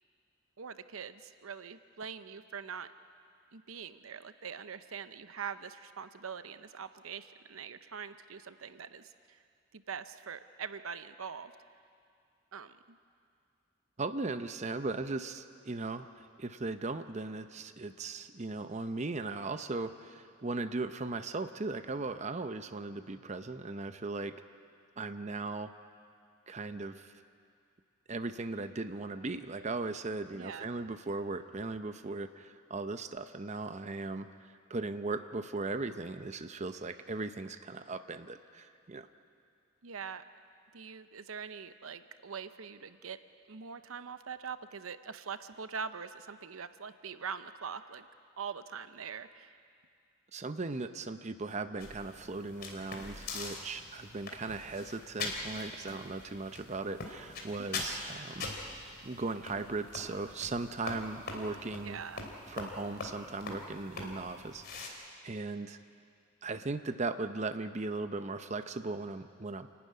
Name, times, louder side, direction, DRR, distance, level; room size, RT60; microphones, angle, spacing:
voice 1, 0.6-2.9 3.5-9.4 9.7-11.5 12.5-13.0 30.3-30.7 39.8-40.2 40.7-43.2 43.5-48.1 48.4-49.6 57.6-58.0 61.8-62.2, right 6 dB, 85° right, 12 dB, 0.8 m, -43 dB
voice 2, 14.0-24.3 25.0-25.7 26.5-27.1 28.1-39.1 50.3-58.5 59.0-62.0 62.5-65.8 66.4-69.7, right 3 dB, 35° right, 9 dB, 0.7 m, -38 dB
sound 1, 51.8-64.9, left 3 dB, 50° left, 3.0 m, -43 dB
27.5 x 12.0 x 9.5 m, 2.3 s
head